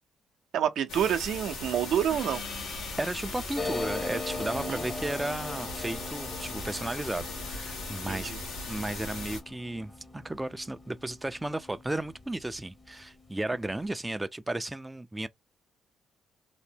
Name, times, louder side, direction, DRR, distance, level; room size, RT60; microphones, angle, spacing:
voice 1, 0.5-2.4 4.7-4.8 8.1-8.4, right 9 dB, 75° right, 0.5 m, -28 dB
sound 1, 0.9-9.4, left 3 dB, 85° left, 1.1 m, -39 dB
Gong, 2.1-7.2, left 6 dB, 55° left, 0.5 m, -47 dB
voice 2, 3.0-8.3 8.7-15.3, right 1 dB, 15° right, 0.3 m, -34 dB
sound 2, 3.6-12.7 13.0-13.1 13.3-13.9, left 2 dB, 20° left, 0.7 m, -40 dB
2.7 x 2.1 x 3.4 m
supercardioid pair, 70°, 0 cm